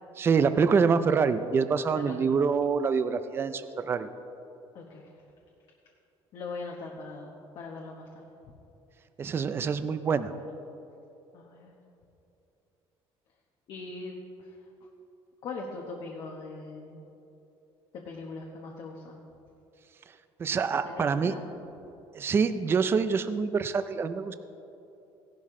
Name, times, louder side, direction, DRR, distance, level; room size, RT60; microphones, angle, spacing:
voice 1, 0.2-4.1 9.2-10.3 20.4-21.3 22.1-24.3, right 5 dB, 25° right, 11 dB, 0.4 m, -26 dB
voice 2, 4.7-5.1 6.3-8.2 11.3-11.7 13.7-14.6 15.4-17.0 17.9-19.2 20.8-21.5, left 3 dB, 50° left, 0 dB, 1.0 m, -41 dB
16.0 x 11.5 x 3.7 m, 2.9 s
cardioid pair, 165°, 10 cm